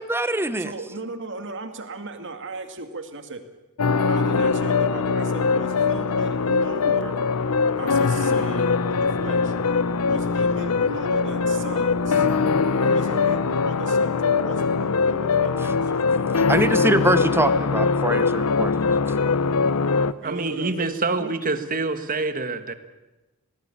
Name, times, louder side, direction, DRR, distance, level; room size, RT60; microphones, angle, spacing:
voice 1, 0.0-0.7 15.6-15.7 16.5-18.7, right 1 dB, 10° right, 12 dB, 1.0 m, -23 dB
voice 2, 0.6-3.4 4.1-7.1 7.8-9.5 10.0-12.3 12.8-15.6 20.2-21.3, right 2 dB, 55° right, 7 dB, 2.3 m, -36 dB
sound 1, 3.8-20.1, left 4 dB, 85° left, 0.8 m, -22 dB
voice 3, 20.2-22.7, right 3 dB, 40° right, 10 dB, 1.5 m, -26 dB
19.5 x 18.5 x 8.7 m, 1.1 s
head